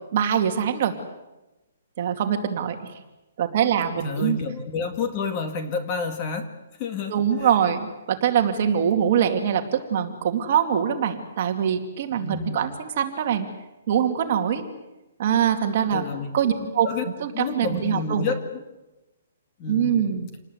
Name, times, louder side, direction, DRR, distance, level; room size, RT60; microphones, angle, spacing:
voice 1, 0.1-0.9 2.0-2.9 3.4-4.4 7.1-13.5 13.9-14.6 15.2-16.0 16.3-16.9 17.2-18.3 19.7-20.3, right 8 dB, 35° right, 5 dB, 2.5 m, -23 dB
voice 2, 4.0-6.5 6.8-7.1 7.4-7.5 12.2-12.6 15.9-17.0 17.3-18.6 19.6-20.0, left 4 dB, 25° left, 6 dB, 2.3 m, -29 dB
28.0 x 20.0 x 8.1 m, 1.0 s
hypercardioid pair, 175°, 0 cm